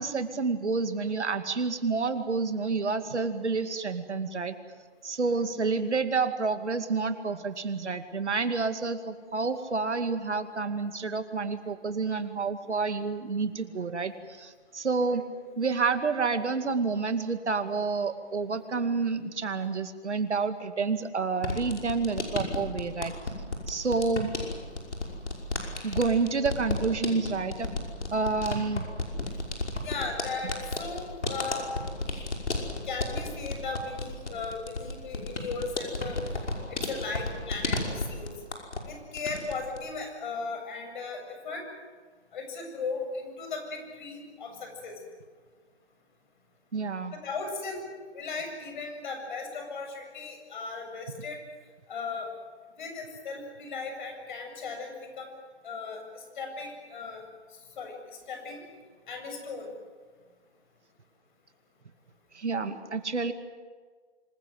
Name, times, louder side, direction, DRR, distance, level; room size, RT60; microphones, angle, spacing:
voice 1, 0.0-4.6 5.0-15.2 15.6-23.2 23.7-24.3 25.8-27.7 28.1-28.9 46.7-47.2 62.3-63.3, right 4 dB, 80° right, 9 dB, 2.4 m, -29 dB
sound 1, 21.4-38.9 39.2-39.8, left 2 dB, 80° left, 5.6 m, -34 dB
voice 2, 29.8-31.7 32.1-32.2 32.9-36.2 36.7-38.3 38.9-41.7 42.3-45.0 47.2-47.9 48.1-51.4 51.9-52.3 52.8-55.3 55.6-57.2 57.8-58.6 59.1-59.7, left 4 dB, 45° left, 4 dB, 7.5 m, -37 dB
26.5 x 21.0 x 7.9 m, 1.5 s
hypercardioid pair, 150°, 34 cm